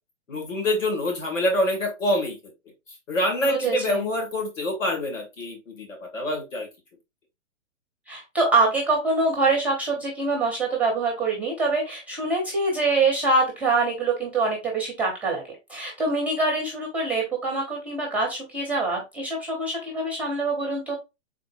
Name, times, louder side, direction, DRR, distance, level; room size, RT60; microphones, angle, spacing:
voice 1, 0.3-2.4 3.1-6.7, left 1 dB, 75° left, 1 dB, 2.5 m, -26 dB
voice 2, 3.4-4.0 8.1-15.4 15.7-21.0, right 3 dB, 5° right, 0 dB, 0.5 m, -25 dB
3.7 x 3.5 x 2.6 m, 0.24 s
hypercardioid pair, 135°, 38 cm